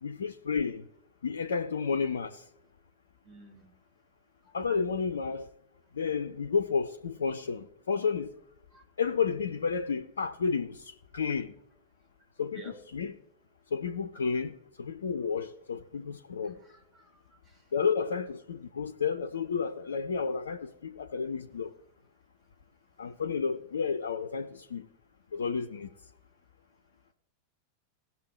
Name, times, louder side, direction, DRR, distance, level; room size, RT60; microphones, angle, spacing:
voice 1, 0.0-0.9 1.2-2.4 4.5-5.5 5.9-8.3 9.0-11.5 12.4-13.2 13.7-16.6 17.7-21.7 23.0-24.9 25.3-25.9, left 5 dB, 70° left, 0.5 m, -31 dB
voice 2, 3.2-3.6 4.4-4.5 8.7-8.8 12.5-12.7 16.6-17.7, right 3 dB, 30° right, 3.0 m, -52 dB
18.0 x 6.8 x 3.1 m
figure-of-eight pair, 90°, 0 cm